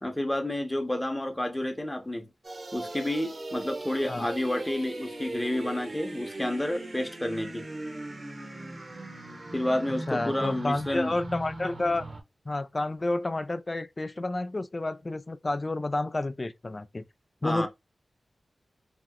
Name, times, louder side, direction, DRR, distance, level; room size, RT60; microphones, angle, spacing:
voice 1, 0.0-2.3 2.7-7.7 9.5-11.2 17.4-17.7, left 1 dB, 15° left, 0.9 m, -30 dB
sound 1, 2.4-12.2, right 2 dB, 50° right, 0.9 m, -39 dB
voice 2, 10.1-12.1 12.5-17.0 17.4-17.7, left 2 dB, 35° left, 0.3 m, -30 dB
2.9 x 2.0 x 3.6 m
wide cardioid pair, 70°, 0 cm